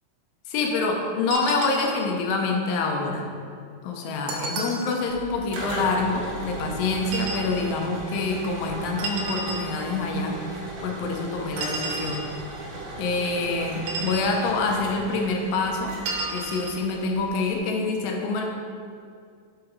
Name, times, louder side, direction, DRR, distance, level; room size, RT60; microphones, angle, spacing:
voice 1, 0.5-3.3 3.8-12.2 13.0-16.0 16.3-18.5, left 3 dB, 80° left, 2 dB, 2.5 m, -26 dB
sound 1, 1.3-2.1 4.3-5.0 7.0-7.5 9.0-9.7 11.6-12.3 13.7-14.3 16.1-16.8, right 2 dB, 80° right, 1.7 m, -31 dB
sound 2, 5.1-17.6, right 2 dB, 65° right, 2.1 m, -37 dB
6.7 x 5.1 x 4.1 m, 2.2 s
omnidirectional pair, 4.3 m